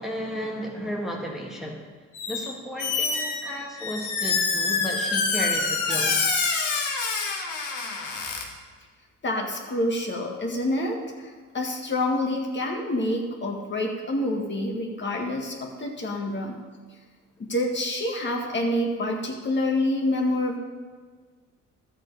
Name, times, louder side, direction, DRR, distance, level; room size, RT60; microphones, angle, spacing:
voice 1, 0.0-1.8 2.3-6.2, equal, ahead, -2 dB, 1.6 m, -33 dB
Squeak, 2.1-2.5 2.8-8.4, left 4 dB, 85° left, 1.7 m, -26 dB
voice 2, 9.2-16.6 17.4-20.6, left 1 dB, 40° left, 0 dB, 1.8 m, -27 dB
12.0 x 7.6 x 4.9 m, 1.5 s
cardioid pair, 90°, 30 cm